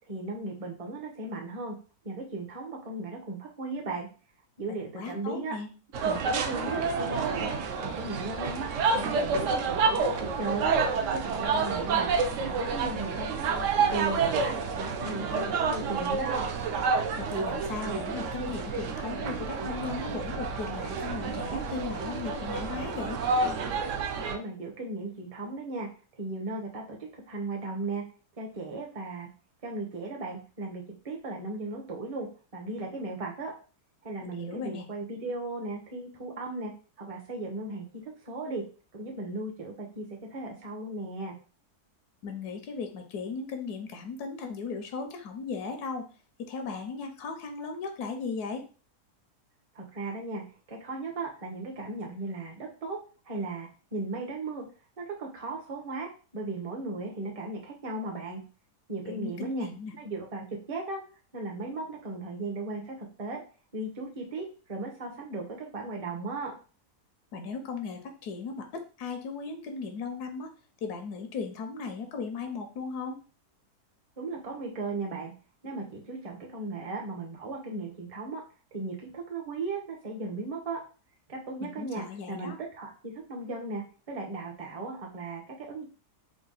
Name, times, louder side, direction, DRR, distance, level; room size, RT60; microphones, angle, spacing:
voice 1, 0.1-1.8 2.0-4.1 4.6-5.6 6.0-7.5 7.8-10.7 11.1-13.5 13.8-16.5 24.3-25.9 26.2-28.0 28.4-29.3 29.6-32.3 32.5-33.5 34.0-36.7 37.0-38.6 38.9-41.4 49.7-50.4 50.7-53.0 53.2-54.6 55.0-58.4 58.9-59.7 60.0-61.0 61.3-63.4 63.7-66.5 74.2-75.3 75.6-78.4 78.7-80.8 81.3-85.9, right 3 dB, 30° right, 1 dB, 0.7 m, -36 dB
voice 2, 4.8-5.7 17.2-23.2 34.2-34.9 42.2-46.0 46.4-48.6 59.1-59.9 67.3-70.5 70.8-73.2 81.6-82.6, left 4 dB, 80° left, 5 dB, 1.2 m, -37 dB
sound 1, 5.9-24.4, right 4 dB, 65° right, 0.8 m, -29 dB
3.8 x 2.3 x 3.8 m, 0.36 s
omnidirectional pair, 1.7 m